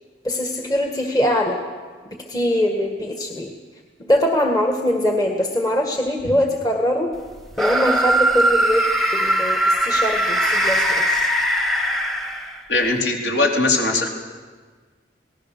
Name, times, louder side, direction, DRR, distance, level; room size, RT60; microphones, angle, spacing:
voice 1, 0.2-1.6 2.3-3.5 4.0-7.1 7.6-8.9 9.1-11.1, left 1 dB, 20° left, 2 dB, 1.7 m, -22 dB
sound 1, 7.5-12.8, right 1 dB, ahead, 1.3 m, -20 dB
voice 2, 12.7-14.1, left 2 dB, 60° left, 0 dB, 3.8 m, -20 dB
26.5 x 19.0 x 6.8 m, 1.5 s
head